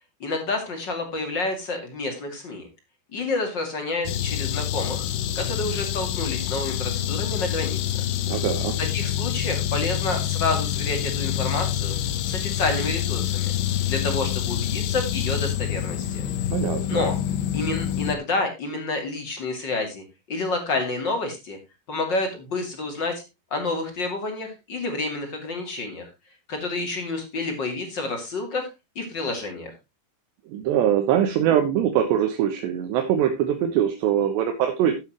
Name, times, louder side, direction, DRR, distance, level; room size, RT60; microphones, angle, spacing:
voice 1, 0.2-2.7 3.1-5.1 5.4-8.0 8.9-12.0 12.2-13.5 13.9-16.3 16.9-17.2 17.5-21.6 21.9-23.2 23.5-26.1 26.5-28.7 29.0-29.7, left 3 dB, 35° left, 4 dB, 2.3 m, -29 dB
sound 1, 4.1-18.2, left 11 dB, 75° left, 2.9 m, -27 dB
voice 2, 8.2-8.8 16.5-17.0 30.5-34.9, right 10 dB, 85° right, 4 dB, 3.4 m, -22 dB
12.5 x 8.9 x 3.0 m, 0.25 s
omnidirectional pair, 4.9 m